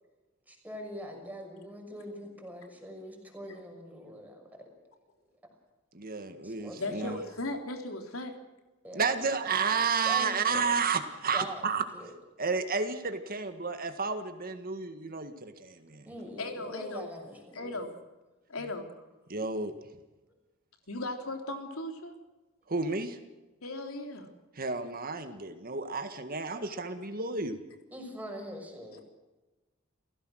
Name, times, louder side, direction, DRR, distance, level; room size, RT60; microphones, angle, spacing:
voice 1, 0.5-4.4 6.4-7.2 8.8-10.8 11.3-11.7 11.9-12.1 16.1-17.8 20.2-20.3 27.9-29.0, equal, 10° right, 2 dB, 6.1 m, -43 dB
voice 2, 5.9-7.2 8.9-11.8 12.4-16.0 19.3-19.7 22.7-23.2 24.6-27.6, right 5 dB, 45° right, 8 dB, 1.8 m, -31 dB
voice 3, 6.8-8.3 10.5-10.7 16.4-17.1 17.5-17.9 18.5-18.9 20.9-22.1 23.6-24.3, left 2 dB, 85° left, 4 dB, 3.5 m, -37 dB
30.0 x 16.5 x 6.5 m, 1.1 s
head